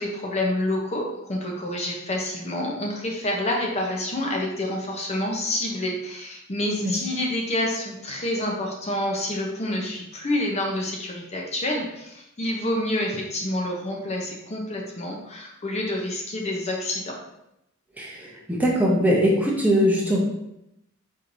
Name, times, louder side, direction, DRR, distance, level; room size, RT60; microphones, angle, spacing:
voice 1, 0.0-17.2, left 1 dB, 30° left, 0 dB, 0.7 m, -28 dB
voice 2, 18.0-20.2, equal, 5° right, -3 dB, 0.7 m, -21 dB
4.6 x 4.4 x 2.6 m, 0.84 s
head